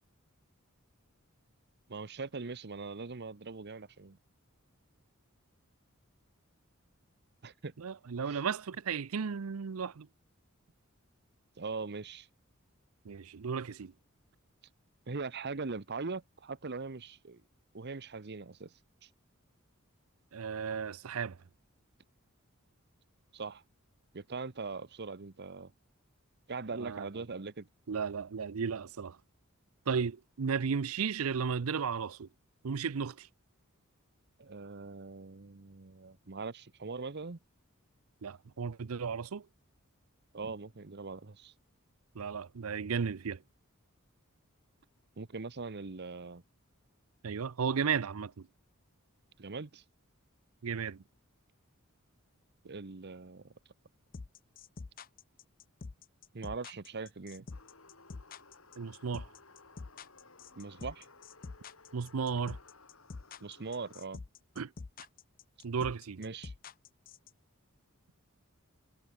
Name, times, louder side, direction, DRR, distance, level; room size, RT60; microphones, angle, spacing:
voice 1, 1.9-4.2 7.4-7.7 8.3-8.4 11.6-12.3 15.1-17.4 17.7-18.7 19.0-19.1 23.3-23.6 24.1-25.7 26.5-27.7 34.4-37.4 40.3-41.5 45.2-46.4 49.4-49.8 52.7-53.5 56.3-57.4 60.6-61.1 63.4-64.2 66.2-66.5, right 4 dB, 50° right, 0.9 m, -41 dB
voice 2, 7.8-10.1 13.0-13.9 20.3-21.4 26.8-27.2 27.9-29.2 29.9-32.3 32.6-33.3 38.2-39.5 42.1-43.4 47.2-48.5 50.6-51.0 58.8-59.3 61.9-62.6 64.6-64.7 65.6-66.2, right 6 dB, 85° right, 0.6 m, -34 dB
sound 1, 54.1-67.3, left 4 dB, 40° left, 0.5 m, -46 dB
sound 2, 57.5-64.1, left 3 dB, 70° left, 6.3 m, -58 dB
head